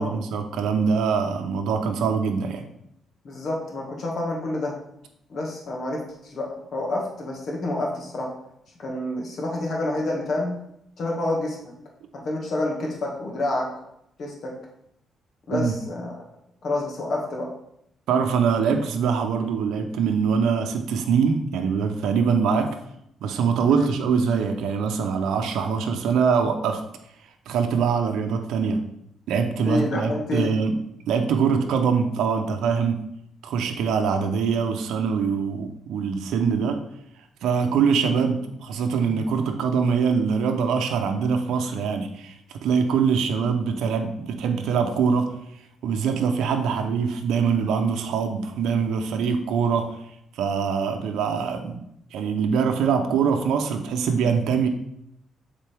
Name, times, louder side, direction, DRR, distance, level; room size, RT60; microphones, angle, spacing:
voice 1, 0.0-2.7 15.5-15.7 18.1-22.8 23.2-26.8 27.5-28.8 29.3-30.8 31.1-33.0 33.4-36.8 37.4-45.4 45.8-49.9 50.3-51.8 52.1-54.7, right 6 dB, 80° right, 5 dB, 0.7 m, -23 dB
voice 2, 3.2-4.8 5.3-8.3 8.8-10.5 11.0-11.6 12.1-13.7 14.2-14.5 15.5-16.1 16.6-17.5 23.7-23.9 29.6-30.5, left 2 dB, 60° left, -1 dB, 1.9 m, -28 dB
7.5 x 4.1 x 3.5 m, 0.76 s
cardioid pair, 90°, 0 cm